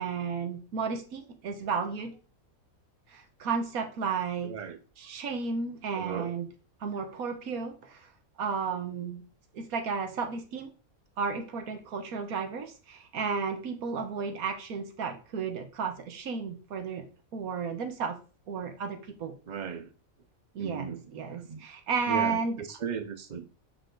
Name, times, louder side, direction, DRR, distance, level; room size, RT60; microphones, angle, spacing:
voice 1, 0.0-2.2 3.1-4.5 5.0-6.4 6.8-8.1 8.4-9.2 9.5-10.7 11.2-17.1 17.3-18.2 18.5-19.3 20.5-22.6, right 5 dB, 90° right, 1.5 m, -33 dB
voice 2, 4.4-4.8 5.9-6.3 19.5-19.9 20.6-21.6 22.1-23.4, right 7 dB, 40° right, 0.7 m, -37 dB
8.0 x 3.4 x 3.8 m
omnidirectional pair, 1.5 m